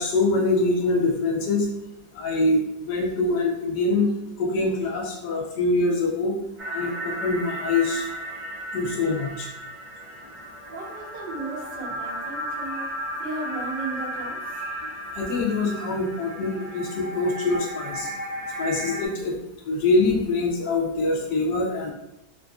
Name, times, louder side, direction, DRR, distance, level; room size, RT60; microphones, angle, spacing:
voice 1, 0.0-1.7 2.1-4.1 4.4-6.3 6.7-8.1 8.7-9.5 15.1-18.1 18.6-19.3 19.6-21.9, left 2 dB, 70° left, -1 dB, 1.2 m, -24 dB
sound 1, 6.6-19.1, right 1 dB, 45° right, 0.5 m, -34 dB
voice 2, 10.7-12.9 13.2-14.7, right 3 dB, 80° right, -5 dB, 1.7 m, -35 dB
3.8 x 2.5 x 2.3 m, 0.88 s
omnidirectional pair, 1.9 m